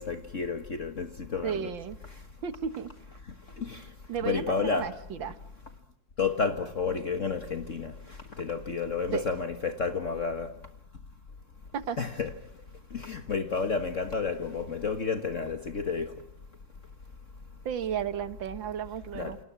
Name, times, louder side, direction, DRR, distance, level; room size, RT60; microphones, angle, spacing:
voice 1, 0.0-1.7 3.5-3.9 4.2-4.9 6.2-10.6 12.0-12.3 12.9-16.2 19.1-19.4, left 5 dB, 45° left, 1.6 m, -31 dB
voice 2, 1.4-2.0 2.4-2.9 4.1-5.4 9.1-9.3 11.7-12.1 17.7-19.4, right 8 dB, 85° right, 2.1 m, -33 dB
29.0 x 28.0 x 6.1 m
omnidirectional pair, 2.0 m